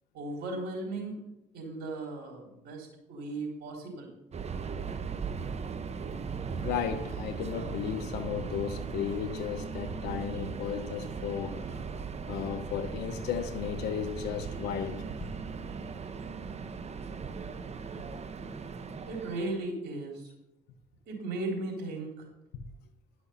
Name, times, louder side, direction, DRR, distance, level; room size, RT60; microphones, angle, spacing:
voice 1, 0.1-1.2 1.5-4.1 19.1-20.3 21.1-22.3, right 2 dB, 80° right, 3.8 m, -36 dB
Subway metro underground, 4.3-19.7, right 5 dB, 40° right, 0.9 m, -38 dB
voice 2, 6.6-11.8 12.3-15.0, left 8 dB, 85° left, 1.0 m, -34 dB
11.5 x 6.2 x 5.7 m
supercardioid pair, 65°, 17 cm